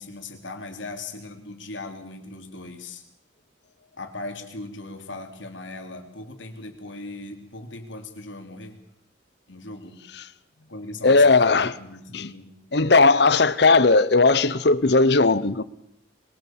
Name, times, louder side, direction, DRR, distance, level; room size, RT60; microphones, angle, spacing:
voice 1, 0.0-3.0 4.0-8.7 9.5-10.0 10.7-12.5, left 2 dB, 80° left, 3.3 m, -38 dB
voice 2, 11.0-11.7 12.1-12.3 12.7-15.6, left 3 dB, 60° left, 0.9 m, -17 dB
23.0 x 22.5 x 7.4 m
head